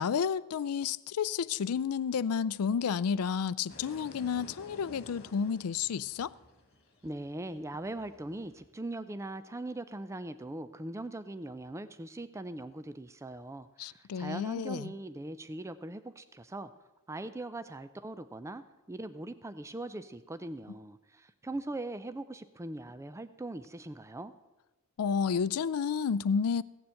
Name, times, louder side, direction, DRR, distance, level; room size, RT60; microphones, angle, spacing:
voice 1, 0.0-6.3 13.8-14.9 25.0-26.6, left 6 dB, 75° left, 0.4 m, -31 dB
sound 1, 3.7-8.7, left 2 dB, 50° left, 2.0 m, -53 dB
voice 2, 7.0-16.7 17.1-24.3, right 2 dB, 15° right, 0.4 m, -41 dB
16.0 x 7.1 x 7.6 m
head